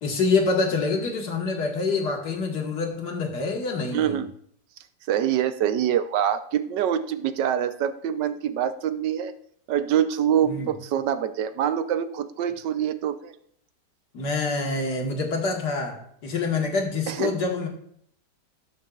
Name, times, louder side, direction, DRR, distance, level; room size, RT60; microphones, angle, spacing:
voice 1, 0.0-4.2 10.4-10.7 14.1-17.7, left 3 dB, 70° left, 1 dB, 2.2 m, -26 dB
voice 2, 3.9-4.3 5.1-9.3 9.7-13.3 17.1-17.3, right 9 dB, 85° right, 11 dB, 1.3 m, -25 dB
18.5 x 6.5 x 2.4 m, 0.66 s
omnidirectional pair, 1.8 m